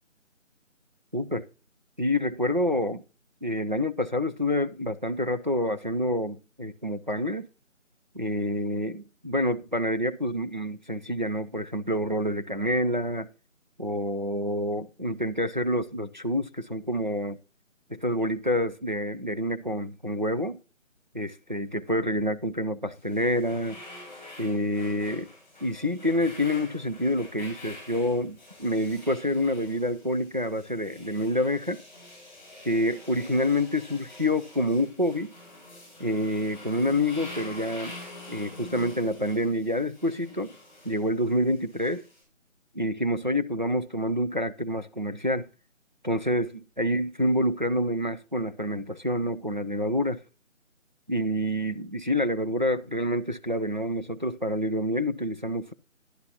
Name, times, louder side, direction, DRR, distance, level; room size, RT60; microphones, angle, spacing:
voice 1, 1.1-1.5 2.0-3.0 3.4-7.5 8.1-13.3 13.8-17.4 17.9-20.6 21.1-23.8 24.4-25.3 25.6-31.8 32.6-35.3 36.0-38.0 38.3-40.5 40.8-42.0 42.7-45.5 46.0-50.2 51.1-55.7, equal, 40° right, 0.5 m, -27 dB
sound 1, 22.9-42.2, left 1 dB, 5° right, 6.0 m, -47 dB
11.0 x 10.5 x 2.8 m
figure-of-eight pair, 175°, 39 cm